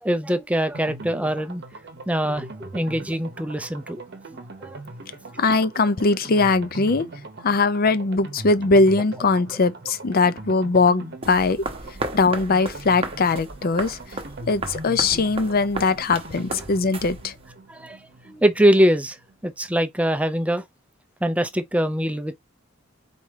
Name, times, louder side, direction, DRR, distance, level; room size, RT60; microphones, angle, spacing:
voice 1, 0.0-1.6 2.1-4.0 4.6-4.8 17.7-18.0 18.2-19.2 19.4-20.6 21.2-22.4, equal, 5° right, 0.5 m, -23 dB
sound 1, 0.7-19.4 19.6-19.7 20.0-20.1, right 2 dB, 55° right, 0.9 m, -40 dB
voice 2, 5.4-7.1 7.4-11.6 12.1-14.0 14.4-17.3, left 3 dB, 50° left, 0.5 m, -20 dB
sound 2, 11.2-17.5, right 3 dB, 30° right, 0.9 m, -35 dB
4.2 x 3.3 x 3.5 m
head